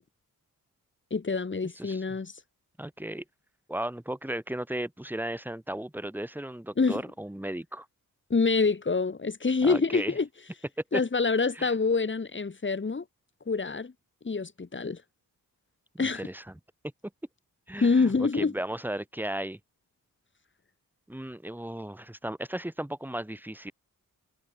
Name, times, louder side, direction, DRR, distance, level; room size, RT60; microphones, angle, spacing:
voice 1, 1.1-2.3 6.8-7.0 8.3-10.3 10.9-13.0 13.5-13.9 14.2-15.0 16.0-16.3 17.8-18.5, left 4 dB, 35° left, 3.0 m, -26 dB
voice 2, 1.8-2.2 2.8-3.2 3.7-7.9 9.6-10.1 10.9-11.0 11.6-11.7 16.0-16.4 17.7-19.6 21.1-23.7, right 1 dB, 5° right, 2.7 m, -35 dB
wide cardioid pair, 125°, 35 cm